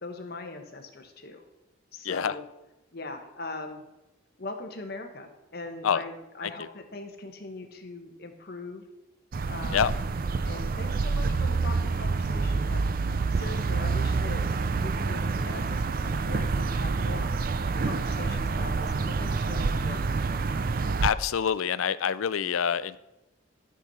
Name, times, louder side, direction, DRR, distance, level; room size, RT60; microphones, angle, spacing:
voice 1, 0.0-1.4 1.9-2.4 2.9-3.8 4.4-8.8 9.5-10.0 10.4-12.8 13.3-14.4 14.8-17.3 17.8-20.2, left 2 dB, 50° left, 5 dB, 1.3 m, -41 dB
sound 1, 9.3-21.1, right 4 dB, 45° right, 0.4 m, -27 dB
voice 2, 21.0-23.0, left 7 dB, 85° left, 16 dB, 0.4 m, -26 dB
13.0 x 6.3 x 4.3 m, 0.97 s
head